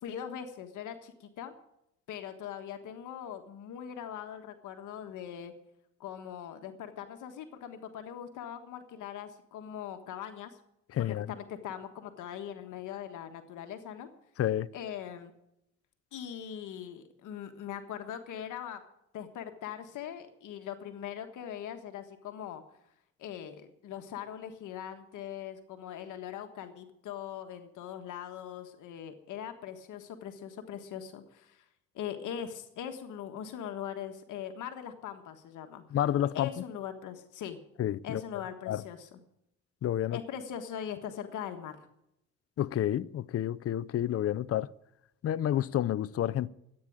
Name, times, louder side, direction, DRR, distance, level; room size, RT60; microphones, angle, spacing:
voice 1, 0.0-1.5 2.1-5.5 6.0-10.6 11.0-14.1 14.7-15.3 16.1-18.8 19.1-22.6 23.2-31.6 31.9-35.8 36.3-37.6 38.0-39.2 40.1-41.8, left 9 dB, 80° left, 1.5 m, -41 dB
voice 2, 10.9-11.3 14.4-14.7 35.9-36.5 37.8-38.2 38.7-38.8 39.8-40.2 42.6-44.7 45.2-46.5, left 11 dB, 50° left, 0.6 m, -29 dB
14.0 x 9.1 x 8.7 m
cardioid pair, 90°, 30 cm